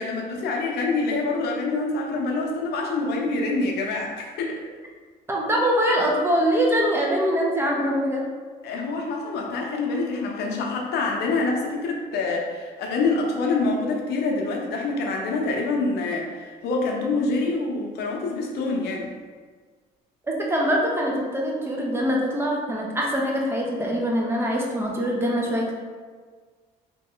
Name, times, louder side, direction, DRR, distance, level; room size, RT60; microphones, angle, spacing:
voice 1, 0.0-4.6 8.6-19.1, left 3 dB, 75° left, 0 dB, 0.7 m, -26 dB
voice 2, 5.3-8.3 20.3-25.7, equal, 15° right, -2 dB, 0.7 m, -23 dB
3.0 x 2.9 x 3.7 m, 1.5 s
cardioid pair, 110°, 17 cm